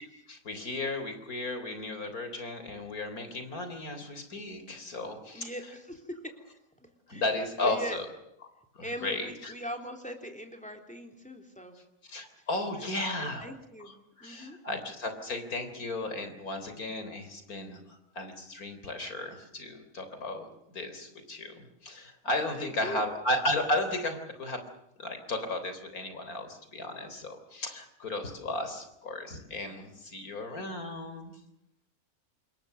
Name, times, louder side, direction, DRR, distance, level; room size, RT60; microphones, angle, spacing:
voice 1, 0.3-5.5 7.1-8.1 8.7-9.5 12.1-13.4 13.8-24.6 25.0-31.3, left 2 dB, 85° left, 8 dB, 4.1 m, -34 dB
voice 2, 5.3-6.3 6.8-7.2 7.6-8.0 8.8-11.8 12.7-12.9 13.2-14.6 22.3-23.0, equal, 5° left, 4 dB, 3.5 m, -41 dB
27.0 x 22.0 x 6.7 m, 0.81 s
omnidirectional pair, 1.5 m